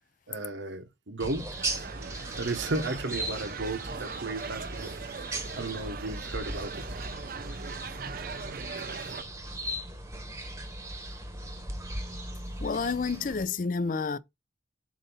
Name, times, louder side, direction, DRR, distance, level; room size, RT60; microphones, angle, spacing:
voice 1, 0.3-1.6 2.4-5.0 5.5-6.9, right 2 dB, 80° right, 1.1 m, -34 dB
sound 1, 1.2-13.4, right 1 dB, 15° right, 1.0 m, -38 dB
sound 2, 1.5-9.2, right 5 dB, 50° right, 0.5 m, -40 dB
voice 2, 12.6-14.2, left 4 dB, 45° left, 0.4 m, -29 dB
7.4 x 2.8 x 5.4 m
head